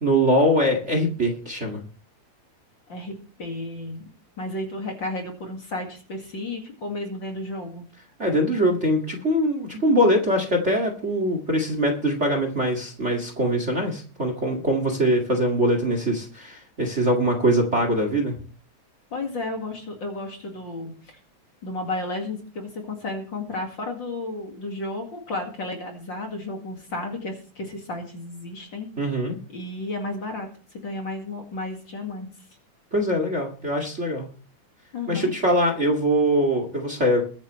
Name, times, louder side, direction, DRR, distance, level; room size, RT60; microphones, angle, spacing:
voice 1, 0.0-1.8 8.2-18.3 29.0-29.4 32.9-34.3 35.1-37.2, equal, 25° right, 3 dB, 2.0 m, -22 dB
voice 2, 2.9-4.0 4.4-7.9 19.1-21.2 21.6-28.9 29.5-30.5 30.7-32.3 34.9-35.3, left 2 dB, 40° left, 2 dB, 2.5 m, -33 dB
22.0 x 8.9 x 3.2 m, 0.39 s
omnidirectional pair, 3.3 m